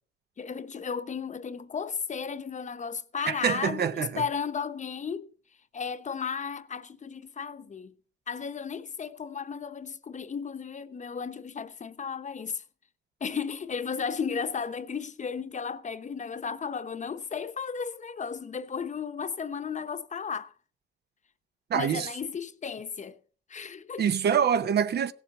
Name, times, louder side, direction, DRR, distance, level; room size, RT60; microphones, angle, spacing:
voice 1, 0.4-5.3 5.7-7.9 8.3-12.6 13.2-20.5 21.7-23.2 23.5-24.0, left 6 dB, 35° left, 0.9 m, -34 dB
voice 2, 3.3-4.2 21.7-22.1 24.0-25.1, right 8 dB, 55° right, 0.8 m, -25 dB
16.0 x 7.5 x 5.3 m
cardioid pair, 90°, 20 cm